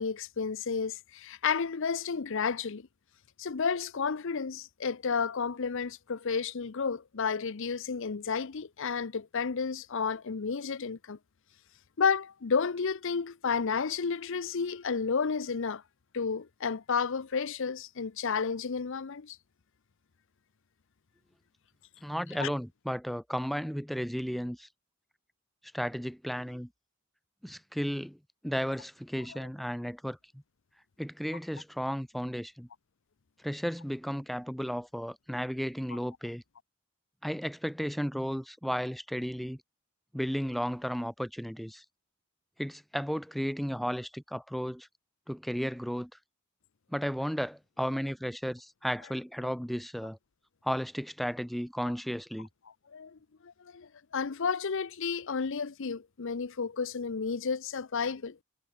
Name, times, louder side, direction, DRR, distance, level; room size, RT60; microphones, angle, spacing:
voice 1, 0.0-2.9 3.4-11.2 12.0-15.8 16.1-19.4 22.4-22.5 52.9-58.4, left 5 dB, 60° left, 0.7 m, -31 dB
voice 2, 22.0-24.7 25.7-26.7 27.4-28.2 28.4-30.4 31.0-32.7 33.4-36.4 37.2-39.6 40.1-41.8 42.6-44.9 45.3-46.1 46.9-50.2 50.6-52.5, equal, ahead, 0.8 m, -34 dB
head